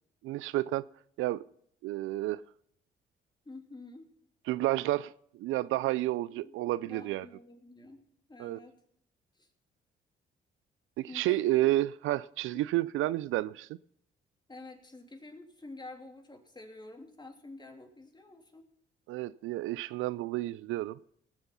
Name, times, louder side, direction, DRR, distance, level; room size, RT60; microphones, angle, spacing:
voice 1, 0.2-0.9 1.2-1.4 1.8-2.4 4.5-7.3 8.4-8.6 11.0-13.8 19.1-21.0, right 16 dB, 75° right, 0.4 m, -30 dB
voice 2, 3.4-4.1 6.4-6.5 6.8-8.8 9.3-9.5 11.1-11.7 12.5-12.6 14.5-18.7, left 2 dB, 20° left, 3.0 m, -49 dB
18.5 x 7.6 x 5.6 m
supercardioid pair, 65°, 21 cm